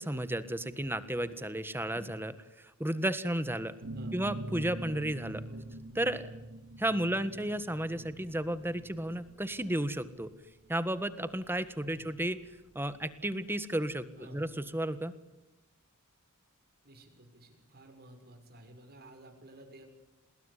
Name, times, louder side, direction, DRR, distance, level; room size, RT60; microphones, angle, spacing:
voice 1, 0.0-3.7 4.1-5.4 5.9-6.3 6.8-10.3 10.7-12.4 12.7-15.1, right 1 dB, 10° right, 12 dB, 1.5 m, -33 dB
sound 1, 3.8-13.2, right 1 dB, 70° right, 2.6 m, -44 dB
voice 2, 11.8-12.1 14.2-14.5 16.8-19.8, right 1 dB, 45° right, 3 dB, 6.1 m, -53 dB
28.0 x 21.0 x 9.8 m, 1.0 s
head